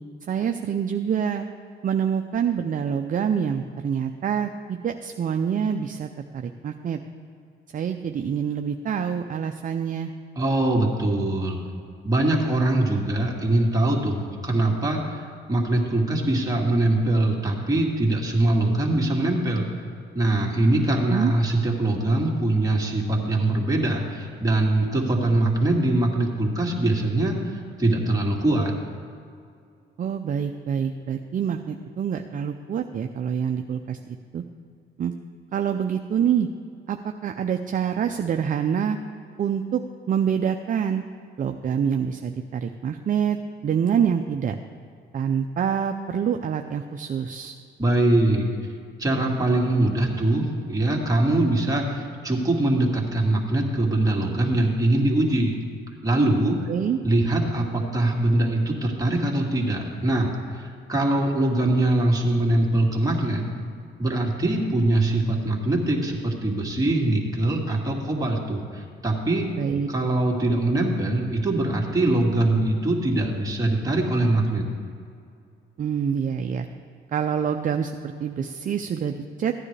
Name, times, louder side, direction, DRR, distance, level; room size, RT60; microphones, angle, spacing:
voice 1, 0.2-1.5 1.8-6.1 6.3-7.0 7.7-10.1 20.9-21.3 30.0-34.4 35.0-35.1 35.5-36.5 36.9-39.0 39.4-39.8 40.1-41.0 41.4-43.4 43.6-44.6 45.1-47.6 56.7-57.0 69.6-69.9 75.8-76.7 77.1-79.5, right 7 dB, 45° right, 6 dB, 0.5 m, -26 dB
voice 2, 10.4-11.6 12.0-19.7 20.1-28.7 47.8-48.5 49.0-55.5 56.0-56.7 57.0-63.5 64.0-69.5 69.9-74.6, right 1 dB, 20° right, -2 dB, 2.1 m, -22 dB
15.0 x 9.8 x 3.3 m, 2.4 s
cardioid pair, 90°, 20 cm